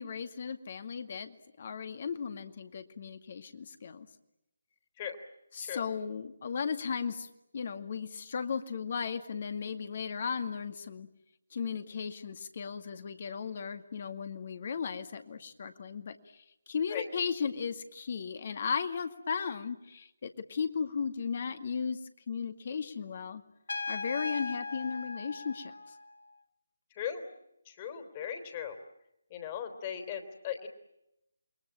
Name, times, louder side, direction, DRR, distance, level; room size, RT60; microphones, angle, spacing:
voice 1, 0.0-4.1 5.5-7.3 7.5-11.1 11.5-22.0 22.3-23.4 23.9-25.7, left 6 dB, 45° left, 9 dB, 2.1 m, -36 dB
Trumpet, 23.7-26.3, left 3 dB, 65° left, 1.7 m, -38 dB
voice 2, 26.9-27.2 27.7-28.8 29.3-30.7, left 9 dB, 25° left, 7 dB, 3.5 m, -38 dB
29.0 x 22.5 x 9.0 m, 0.86 s
figure-of-eight pair, 150°, 0 cm